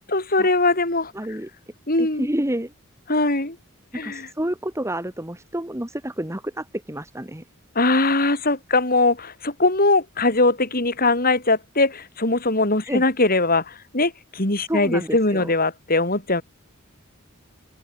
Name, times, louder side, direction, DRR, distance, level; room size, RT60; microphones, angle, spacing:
voice 1, 0.1-1.1 1.9-2.3 3.1-3.6 3.9-4.3 7.8-16.4, left 2 dB, 45° left, 5.5 m, -21 dB
voice 2, 1.1-1.5 2.0-2.7 4.0-7.4 12.9-13.0 14.7-15.5, right 1 dB, 15° right, 1.8 m, -29 dB
open air
head